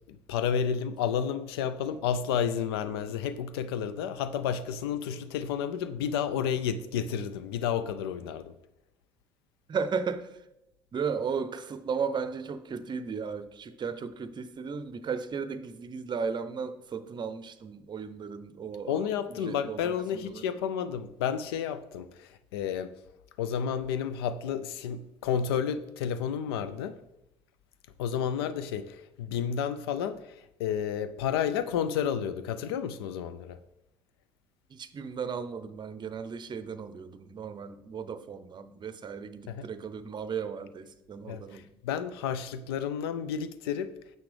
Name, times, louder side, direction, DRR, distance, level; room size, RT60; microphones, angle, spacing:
voice 1, 0.1-8.5 18.9-22.9 23.4-26.9 28.0-33.6 39.5-39.7 41.3-43.9, left 8 dB, 85° left, 0.4 m, -31 dB
voice 2, 9.7-10.3 10.9-18.9 19.4-20.4 28.4-28.5 34.7-41.6, right 6 dB, 35° right, 0.6 m, -35 dB
7.0 x 5.9 x 3.3 m
hypercardioid pair, 60°, 13 cm